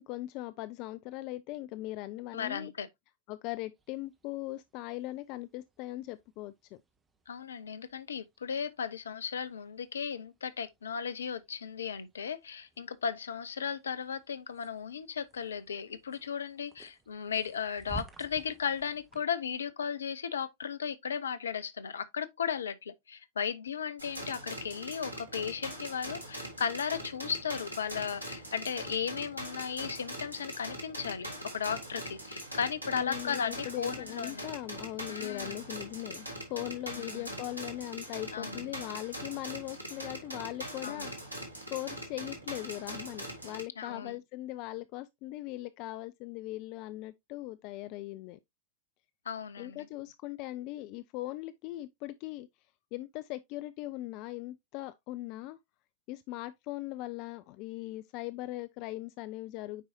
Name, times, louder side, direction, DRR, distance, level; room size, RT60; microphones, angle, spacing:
voice 1, 0.0-2.7 3.3-6.8 32.9-41.1 41.7-48.4 49.6-52.5 52.9-55.6 56.1-59.8, left 17 dB, 45° left, 0.4 m, -40 dB
voice 2, 2.3-2.9 7.3-34.5 35.1-35.6 37.0-37.3 38.3-38.8 40.8-41.1 43.8-44.2 49.3-49.9, left 7 dB, 70° left, 0.7 m, -36 dB
sound 1, 3.7-19.2, right 2 dB, 20° right, 1.2 m, -54 dB
sound 2, 24.0-43.6, right 1 dB, 90° left, 1.9 m, -42 dB
9.1 x 4.7 x 2.8 m
figure-of-eight pair, 90°, 0 cm